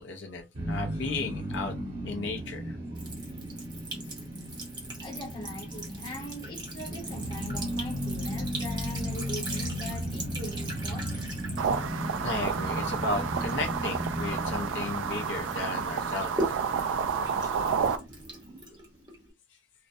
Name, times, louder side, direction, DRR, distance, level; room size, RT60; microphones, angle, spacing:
voice 1, 0.0-1.7 2.0-2.8 12.2-16.3, left 3 dB, 70° left, 0.5 m, -34 dB
sound 1, 0.5-17.7, equal, 55° right, 1.1 m, -36 dB
Sink (filling or washing) / Trickle dribble, 2.9-15.1 15.4-19.3, right 2 dB, 20° right, 0.8 m, -40 dB
voice 2, 5.0-11.2, left 1 dB, 25° left, 0.7 m, -42 dB
sound 2, 11.6-18.0, right 6 dB, 85° right, 0.3 m, -30 dB
2.5 x 2.1 x 2.6 m
head